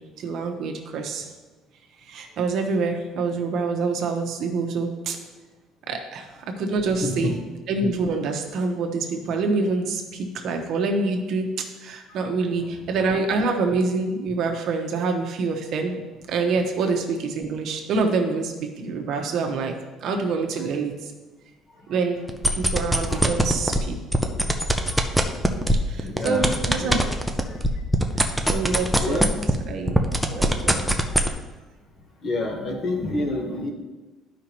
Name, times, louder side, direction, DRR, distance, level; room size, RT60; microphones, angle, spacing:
voice 1, 0.2-1.3 2.0-5.2 5.9-6.3 6.6-7.3 7.7-16.0 16.3-19.7 20.0-21.1 21.9-22.2 22.5-24.0 25.9-27.0 28.2-29.3 29.7-30.0 30.3-30.8, right 4 dB, 55° right, 3 dB, 1.0 m, -26 dB
voice 2, 7.0-7.3 23.1-23.3 26.0-27.0 27.5-27.6 29.0-29.3 30.3-30.4 32.2-33.7, left 2 dB, 40° left, 2 dB, 1.2 m, -28 dB
sound 1, 22.3-23.8 24.1-29.6 29.9-31.3, equal, ahead, 0.5 m, -20 dB
12.5 x 5.1 x 2.9 m, 1.2 s
cardioid pair, 160°, 0 cm